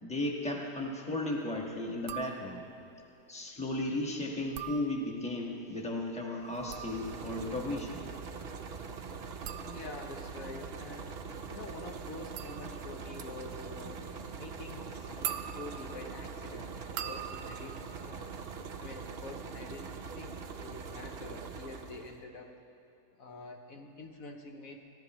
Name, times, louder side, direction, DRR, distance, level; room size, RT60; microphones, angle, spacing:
voice 1, 0.0-2.6 3.3-8.0, left 1 dB, 5° left, -1 dB, 1.2 m, -35 dB
sound 1, 2.0-2.8 4.4-5.4 6.4-19.1 19.4-20.0, right 10 dB, 75° right, 1.1 m, -45 dB
sound 2, 6.4-22.2, right 5 dB, 50° right, 0.8 m, -43 dB
voice 2, 9.6-11.1 11.5-14.0 14.4-18.3 18.8-22.6 23.2-24.8, left 3 dB, 65° left, 2 dB, 1.2 m, -47 dB
22.5 x 14.5 x 3.0 m, 2.9 s
omnidirectional pair, 1.7 m